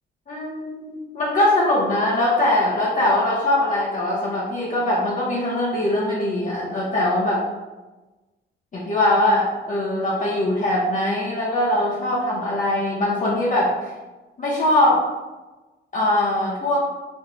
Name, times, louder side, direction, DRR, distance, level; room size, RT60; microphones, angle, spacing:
voice 1, 0.3-7.4 8.7-13.7 14.4-15.0 15.9-16.8, left 1 dB, 40° left, -6 dB, 0.9 m, -21 dB
4.2 x 2.7 x 3.2 m, 1.2 s
cardioid pair, 90°, 20 cm